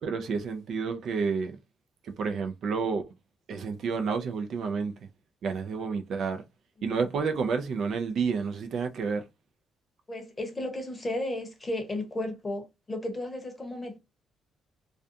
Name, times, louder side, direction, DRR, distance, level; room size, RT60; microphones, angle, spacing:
voice 1, 0.0-1.6 2.0-3.0 3.5-4.9 5.4-6.4 6.8-9.2, right 5 dB, 60° right, 0.4 m, -30 dB
voice 2, 6.8-7.1 10.1-14.0, left 1 dB, 20° left, 0.8 m, -34 dB
2.4 x 2.2 x 2.6 m
cardioid pair, 120°, 0 cm